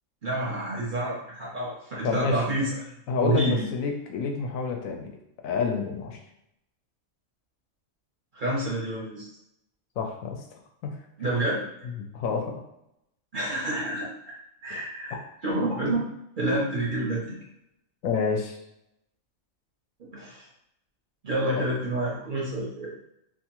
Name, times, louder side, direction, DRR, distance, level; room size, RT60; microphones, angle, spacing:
voice 1, 0.2-2.9 3.2-3.7 8.3-9.3 11.2-11.6 13.3-14.4 14.6-16.0 16.4-17.3 20.0-20.4 21.2-22.9, right 1 dB, 50° right, -5 dB, 0.6 m, -28 dB
voice 2, 2.0-2.4 3.1-5.1 5.4-6.2 10.0-10.4 10.8-11.0 11.8-12.6 15.1-15.2 18.0-18.6 21.6-21.7, left 5 dB, 80° left, 2 dB, 1.0 m, -28 dB
2.7 x 2.3 x 2.8 m, 0.80 s
omnidirectional pair, 1.4 m